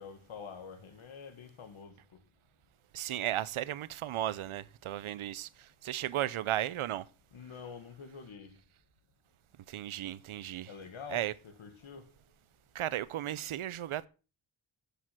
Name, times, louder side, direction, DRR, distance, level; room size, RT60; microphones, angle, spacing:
voice 1, 0.0-2.2 7.3-8.6 10.7-12.1, left 6 dB, 80° left, 2.1 m, -47 dB
voice 2, 2.9-7.1 9.7-10.7 11.1-11.3 12.7-14.1, right 12 dB, 85° right, 0.7 m, -35 dB
11.0 x 7.1 x 5.9 m
cardioid pair, 65°, 48 cm